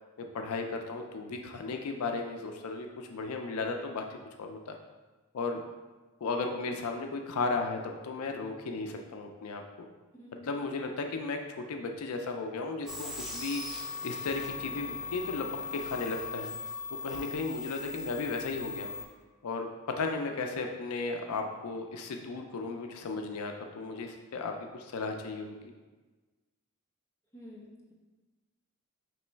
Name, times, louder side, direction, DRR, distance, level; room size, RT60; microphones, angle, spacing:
voice 1, 0.2-4.7 5.3-5.6 6.2-9.6 10.5-16.5 16.9-19.0 19.4-19.7 20.0-25.7, left 3 dB, 85° left, 4 dB, 0.4 m, -35 dB
sound 1, 12.9-19.0, left 3 dB, ahead, 0.4 m, -39 dB
voice 2, 27.3-27.9, left 1 dB, 15° left, -5 dB, 0.8 m, -50 dB
3.1 x 3.0 x 4.4 m, 1.3 s
head